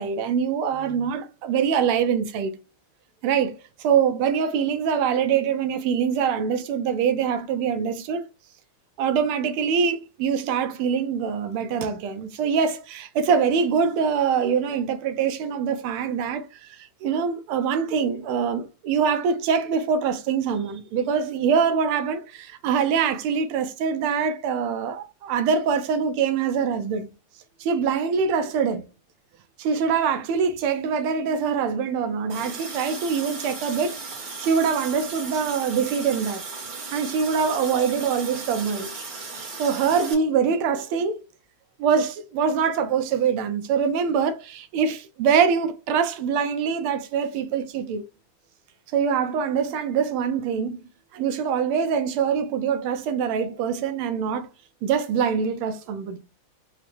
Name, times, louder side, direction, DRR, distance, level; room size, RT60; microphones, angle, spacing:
voice 1, 0.0-2.6 3.2-8.3 9.0-27.1 27.6-28.8 29.6-34.0 34.4-36.4 36.9-38.9 39.6-41.2 41.8-48.0 48.9-50.8 51.1-54.5 54.8-56.2, right 6 dB, 80° right, 1.5 m, -24 dB
Water tap faucet, 32.3-40.1, right 4 dB, 50° right, 1.4 m, -36 dB
4.9 x 2.0 x 2.9 m
omnidirectional pair, 2.4 m